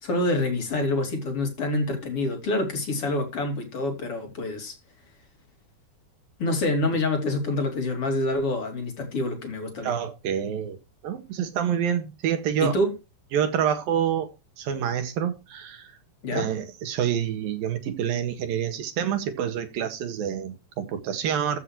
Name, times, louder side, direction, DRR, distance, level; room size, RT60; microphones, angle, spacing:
voice 1, 0.0-4.7 6.4-9.9 12.6-12.9 16.2-16.5, left 2 dB, 40° left, 3.6 m, -26 dB
voice 2, 9.8-10.8 11.0-12.8 13.3-14.3 14.6-15.9 16.3-21.6, right 9 dB, 75° right, 3.5 m, -27 dB
14.5 x 8.2 x 3.1 m
omnidirectional pair, 4.2 m